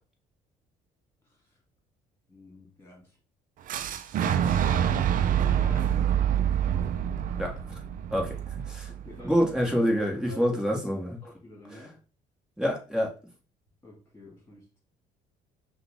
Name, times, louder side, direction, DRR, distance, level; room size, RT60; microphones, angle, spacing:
voice 1, 2.3-3.2 4.2-6.9 8.1-8.3 8.9-9.5 10.3-12.0 13.8-14.8, left 2 dB, 15° left, 2.3 m, -48 dB
Boom, 3.7-9.6, right 9 dB, 55° right, 0.4 m, -26 dB
voice 2, 7.4-7.8 8.1-8.4 8.7-8.9 9.2-11.2 12.6-13.1, equal, 5° right, 1.4 m, -26 dB
5.5 x 2.3 x 3.5 m
cardioid pair, 110°, 17 cm